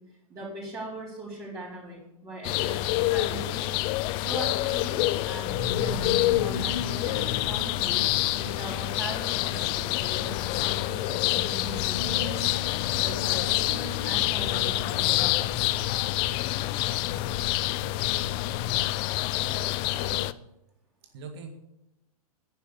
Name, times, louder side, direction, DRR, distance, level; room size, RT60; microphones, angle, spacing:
voice 1, 0.0-3.9 4.2-8.0 8.4-12.4 13.0-15.8, right 2 dB, 15° right, -9 dB, 5.1 m, -40 dB
sound 1, 2.4-20.3, left 18 dB, 25° left, 0.5 m, -27 dB
sound 2, 5.5-18.9, left 5 dB, 40° left, 2.7 m, -38 dB
voice 2, 19.4-20.3 21.0-21.5, right 4 dB, 40° right, 5 dB, 2.0 m, -43 dB
11.0 x 10.5 x 8.4 m, 0.89 s
figure-of-eight pair, 110°, 20 cm